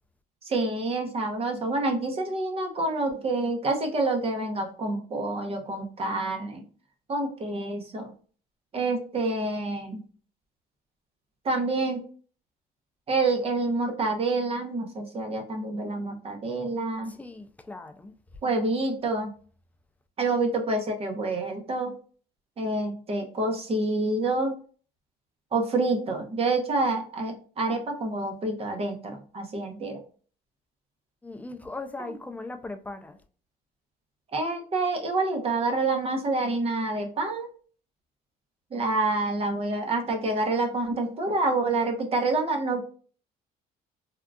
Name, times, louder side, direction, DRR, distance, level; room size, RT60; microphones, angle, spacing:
voice 1, 0.4-6.6 7.1-8.1 8.7-10.0 11.4-12.0 13.1-17.1 18.4-19.3 20.2-21.9 22.6-24.5 25.5-30.0 34.3-37.5 38.7-42.8, right 2 dB, 35° right, 0.8 m, -27 dB
voice 2, 17.1-18.1 31.2-33.2, left 2 dB, 10° left, 0.4 m, -39 dB
3.6 x 2.3 x 2.3 m
cardioid pair, 110°, 17 cm